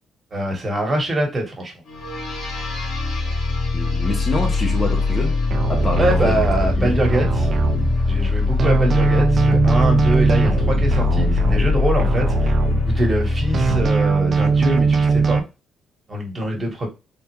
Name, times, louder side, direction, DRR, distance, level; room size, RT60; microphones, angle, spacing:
voice 1, 0.3-1.7 6.0-7.5 8.1-12.5 12.8-15.4 16.1-16.9, right 1 dB, 30° right, 1.4 m, -23 dB
sound 1, 1.9-13.9, left 3 dB, 55° left, 1.5 m, -21 dB
voice 2, 3.7-5.4 5.7-6.3 6.8-7.0, left 2 dB, 30° left, 0.8 m, -26 dB
sound 2, 5.5-8.3 8.6-13.3 13.5-15.4, right 5 dB, 45° right, 0.5 m, -21 dB
3.5 x 2.5 x 3.0 m
cardioid pair, 105°, 0 cm